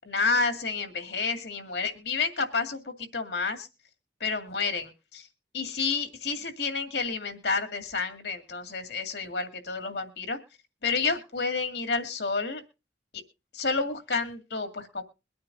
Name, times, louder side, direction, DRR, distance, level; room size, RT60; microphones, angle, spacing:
voice 1, 0.1-3.7 4.2-5.3 5.5-10.4 10.8-12.6 13.1-13.2 13.5-15.0, left 4 dB, 80° left, 7 dB, 2.1 m, -30 dB
23.0 x 9.4 x 2.6 m, 0.29 s
head